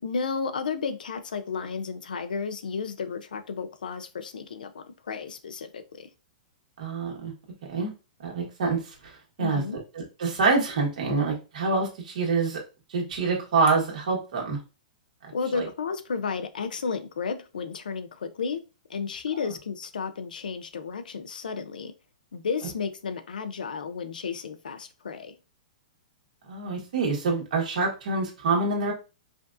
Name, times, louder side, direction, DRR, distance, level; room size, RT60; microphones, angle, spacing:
voice 1, 0.0-6.1 9.4-9.8 15.3-18.6 18.9-21.9 22.3-25.3, left 5 dB, 85° left, 0.6 m, -33 dB
voice 2, 6.8-7.3 7.7-7.9 8.2-9.6 9.9-12.6 12.9-14.6 15.2-15.7 26.4-28.9, right 4 dB, 70° right, 1.5 m, -26 dB
5.0 x 2.4 x 2.6 m
hypercardioid pair, 130°, 4 cm